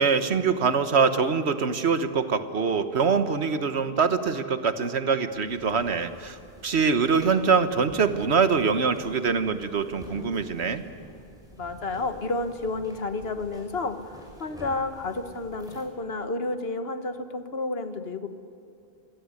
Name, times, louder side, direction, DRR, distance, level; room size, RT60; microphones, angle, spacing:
voice 1, 0.0-6.4 6.6-10.8, right 5 dB, 90° right, 10 dB, 1.5 m, -24 dB
sound 1, 5.3-15.8, equal, 5° right, 5.7 m, -48 dB
voice 2, 11.6-18.3, left 3 dB, 70° left, 9 dB, 1.6 m, -31 dB
25.0 x 16.5 x 9.7 m, 2.7 s
omnidirectional pair, 1.1 m